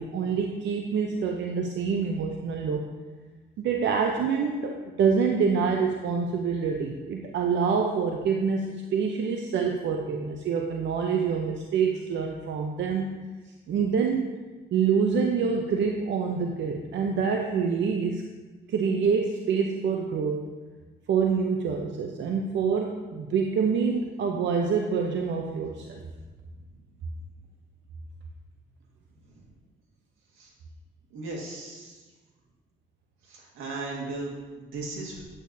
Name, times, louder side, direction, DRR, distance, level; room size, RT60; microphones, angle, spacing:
voice 1, 0.0-2.9 3.6-13.1 13.7-14.4 14.7-18.2 18.7-20.5 21.1-26.0, right 6 dB, 65° right, 2 dB, 0.7 m, -26 dB
voice 2, 31.1-32.0 33.2-35.2, right 3 dB, 85° right, -2 dB, 1.8 m, -37 dB
8.8 x 7.9 x 2.7 m, 1.3 s
cardioid pair, 90°, 20 cm